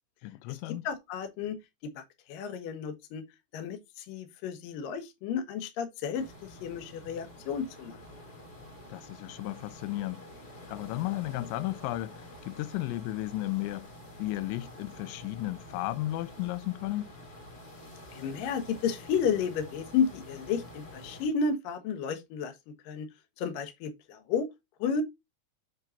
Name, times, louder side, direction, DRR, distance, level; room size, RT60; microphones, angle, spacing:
voice 1, 0.2-0.9 8.9-10.2 10.7-13.9 14.2-17.1, left 17 dB, 85° left, 3.0 m, -34 dB
voice 2, 0.8-1.6 2.0-3.2 3.5-8.0 18.1-22.5 22.8-23.1 23.4-24.5 24.8-25.0, left 6 dB, 65° left, 2.6 m, -32 dB
sound 1, 6.1-21.3, left 1 dB, 30° left, 4.1 m, -48 dB
7.8 x 7.4 x 2.7 m
omnidirectional pair, 5.3 m